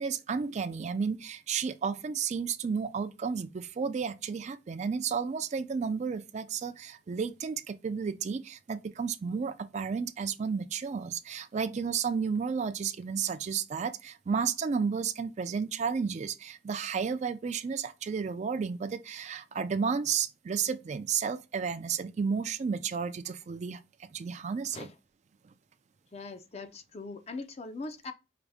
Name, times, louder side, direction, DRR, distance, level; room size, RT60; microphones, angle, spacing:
voice 1, 0.0-23.8 24.1-24.9, right 6 dB, 40° right, 0.3 m, -32 dB
voice 2, 26.1-28.1, left 3 dB, 35° left, 0.5 m, -41 dB
4.9 x 2.6 x 3.3 m
head